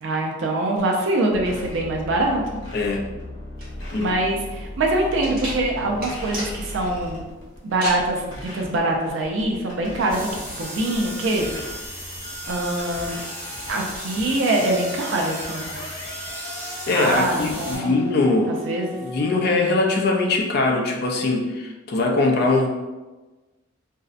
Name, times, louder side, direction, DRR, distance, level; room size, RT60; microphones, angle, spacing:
voice 1, 0.0-2.6 4.0-7.2 7.6-10.3 10.6-11.6 12.5-13.2 13.7-15.8 16.9-18.0 18.5-19.0, right 2 dB, 65° right, 1 dB, 0.4 m, -24 dB
sound 1, 1.3-19.5, left 1 dB, 75° left, 0.9 m, -38 dB
sound 2, 3.6-11.1, right 1 dB, 45° right, 0.8 m, -36 dB
sound 3, 10.1-17.7, right 1 dB, 5° left, 0.9 m, -35 dB
voice 2, 16.9-18.5 18.9-22.7, left 3 dB, 50° left, 1 dB, 0.4 m, -21 dB
2.6 x 2.0 x 2.4 m, 1.2 s
head